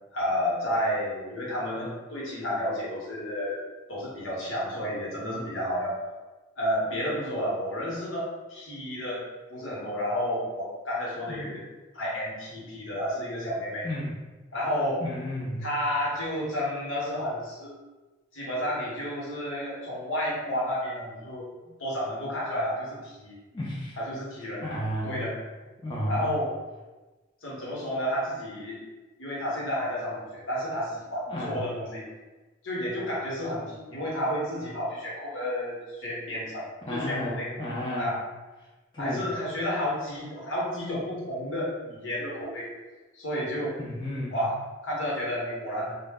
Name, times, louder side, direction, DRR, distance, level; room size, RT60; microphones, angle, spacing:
voice 1, 0.1-3.6 3.9-6.0 6.6-9.2 9.5-11.6 11.9-13.9 14.5-15.0 15.6-17.8 18.3-21.5 21.8-23.4 24.0-24.6 25.0-25.3 26.1-26.5 27.4-28.8 29.2-32.1 32.6-37.5 38.0-38.2 39.0-42.7 43.1-43.8 44.3-44.5 44.8-45.9, equal, 80° left, -5 dB, 0.9 m, -31 dB
voice 2, 15.0-15.7 23.5-24.0 24.6-25.2 25.8-26.2 31.3-31.6 36.8-38.1 38.9-39.3 43.8-44.5, equal, 25° left, -6 dB, 0.4 m, -32 dB
2.0 x 2.0 x 3.4 m, 1.2 s
head